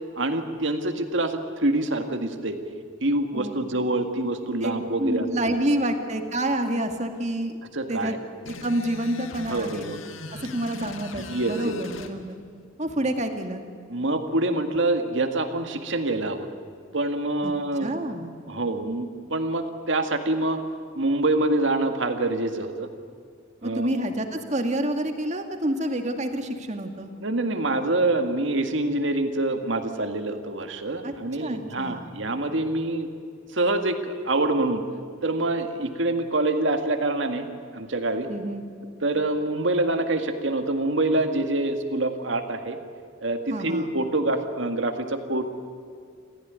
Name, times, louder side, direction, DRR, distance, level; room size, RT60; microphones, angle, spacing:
voice 1, 0.2-2.6 3.0-5.3 7.7-8.2 9.5-10.0 11.2-11.8 13.9-16.5 16.9-17.9 18.5-20.6 21.0-22.9 23.6-23.9 27.2-33.1 33.5-34.8 35.2-37.5 37.7-38.3 39.0-42.8 43.2-45.4, right 2 dB, 65° right, 6 dB, 2.0 m, -26 dB
voice 2, 5.0-7.5 7.9-8.1 8.4-9.9 10.4-12.4 12.8-13.6 17.4-17.5 17.8-18.4 23.6-27.1 31.0-31.1 31.4-32.1 38.3-38.7 43.5-43.9, right 1 dB, 35° right, 5 dB, 2.0 m, -28 dB
sound 1, 8.5-12.1, left 3 dB, 80° left, 1.9 m, -39 dB
28.0 x 15.5 x 9.5 m, 2.2 s
head